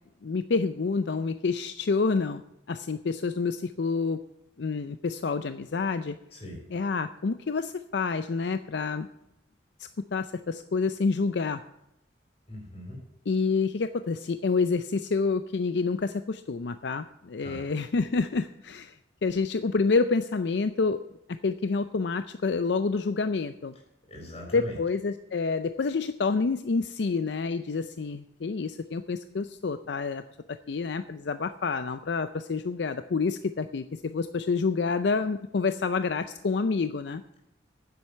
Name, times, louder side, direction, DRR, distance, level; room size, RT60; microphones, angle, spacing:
voice 1, 0.2-2.4 2.7-4.2 4.6-6.1 6.7-9.1 9.8-11.6 13.3-18.9 19.2-21.0 21.4-23.7 24.5-30.2 30.7-37.2, left 4 dB, 70° left, 11 dB, 0.5 m, -28 dB
voice 2, 12.5-13.0 17.4-17.6 24.1-24.8, left 1 dB, 35° left, 0 dB, 4.3 m, -40 dB
10.0 x 7.8 x 8.4 m, 0.85 s
head